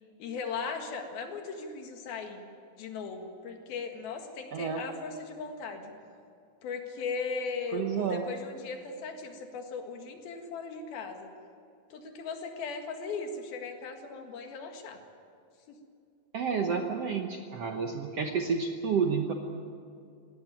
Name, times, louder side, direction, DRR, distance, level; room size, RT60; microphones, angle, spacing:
voice 1, 0.2-2.5 2.8-5.9 6.6-11.3 11.9-15.0 15.7-15.8, left 5 dB, 80° left, 4 dB, 3.7 m, -38 dB
voice 2, 4.5-4.8 7.7-8.2 16.3-19.3, right 6 dB, 65° right, 3 dB, 1.6 m, -30 dB
18.5 x 18.0 x 9.4 m, 2.4 s
omnidirectional pair, 4.2 m